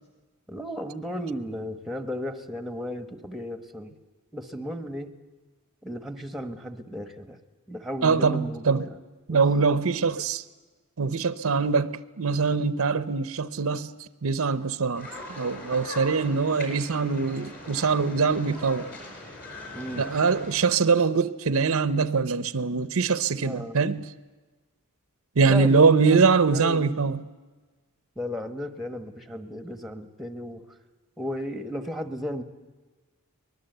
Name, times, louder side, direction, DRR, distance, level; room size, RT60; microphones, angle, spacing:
voice 1, 0.5-3.9 4.3-5.1 5.8-7.4 7.7-9.0 9.3-9.4 10.2-10.3 19.7-20.1 23.4-23.9 25.4-26.9 28.2-30.7 31.2-32.4, equal, ahead, 1.2 m, -34 dB
voice 2, 8.0-8.9 9.3-10.4 11.0-13.9 14.2-18.9 20.0-24.1 25.4-27.2, right 4 dB, 70° right, 0.7 m, -23 dB
sound 1, 14.9-20.7, left 1 dB, 40° left, 6.2 m, -41 dB
24.0 x 20.0 x 8.0 m
head